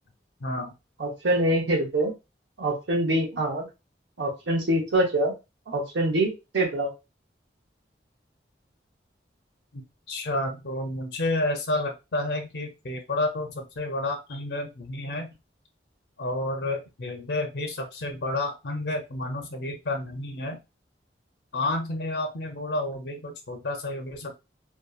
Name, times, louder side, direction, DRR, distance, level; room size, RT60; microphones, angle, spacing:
voice 1, 0.4-0.7 9.7-9.8 10.1-15.3 16.2-20.6 21.5-24.3, left 2 dB, 65° left, 5 dB, 0.5 m, -30 dB
voice 2, 1.0-2.1 2.6-3.7 4.2-5.3 5.7-6.9, right 1 dB, 90° right, -1 dB, 0.8 m, -25 dB
2.6 x 2.3 x 2.3 m, 0.25 s
head